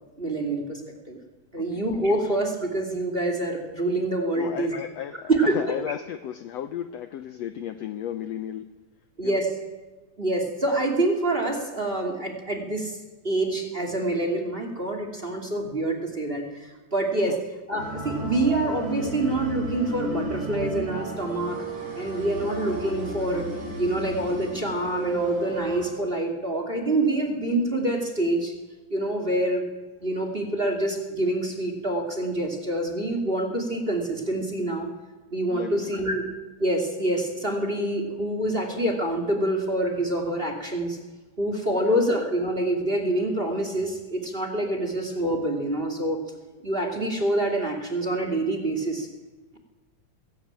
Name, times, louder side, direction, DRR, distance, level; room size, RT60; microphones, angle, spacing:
voice 1, 0.2-0.8 1.1-1.2 1.5-4.8 5.3-5.7 9.2-9.5 10.2-13.0 13.2-17.3 17.7-21.6 21.9-23.4 23.8-28.5 28.9-29.7 30.0-34.9 35.3-36.2 36.6-41.0 41.4-46.2 46.6-49.1, right 1 dB, 20° right, 5 dB, 2.5 m, -26 dB
voice 2, 4.3-8.7 9.2-9.4 17.3-17.4 22.2-22.5 29.2-29.4 35.4-36.1 41.8-42.0 44.6-44.9, left 10 dB, 70° left, 10 dB, 1.6 m, -35 dB
sound 1, 17.8-25.9, right 1 dB, 70° right, 8.5 m, -33 dB
21.5 x 17.0 x 8.9 m, 1.2 s
omnidirectional pair, 3.7 m